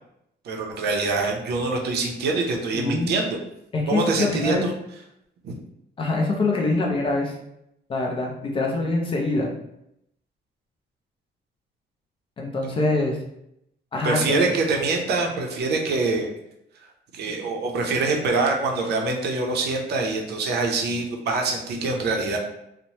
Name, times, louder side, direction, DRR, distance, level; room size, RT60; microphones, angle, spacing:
voice 1, 0.4-3.4 3.9-4.7 5.4-5.5 14.0-16.3 17.1-22.4, right 3 dB, 65° right, 1 dB, 0.5 m, -24 dB
voice 2, 2.7-3.1 3.7-4.6 6.0-7.3 7.9-9.5 12.4-13.2 13.9-14.5, left 2 dB, 30° left, -1 dB, 0.4 m, -24 dB
3.0 x 2.0 x 2.7 m, 0.79 s
cardioid pair, 160°, 18 cm